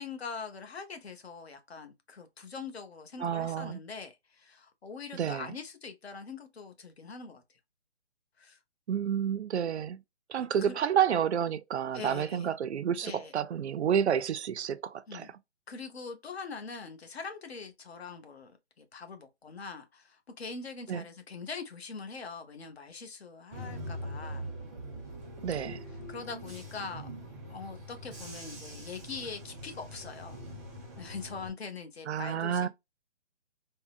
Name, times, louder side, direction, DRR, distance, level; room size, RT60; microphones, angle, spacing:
voice 1, 0.0-7.4 8.4-8.6 10.6-10.8 11.9-12.5 13.0-13.3 15.1-15.3 15.7-24.5 26.1-27.1 27.5-30.4 31.0-32.7, left 5 dB, 65° left, 1.0 m, -43 dB
voice 2, 3.2-3.8 5.1-5.5 8.9-10.0 10.3-15.4 20.9-21.0 25.4-25.8 32.1-32.7, right 8 dB, 75° right, 0.5 m, -30 dB
Bus / Engine, 23.5-31.5, equal, 10° right, 0.5 m, -43 dB
3.6 x 2.1 x 2.4 m
hypercardioid pair, 170°, 34 cm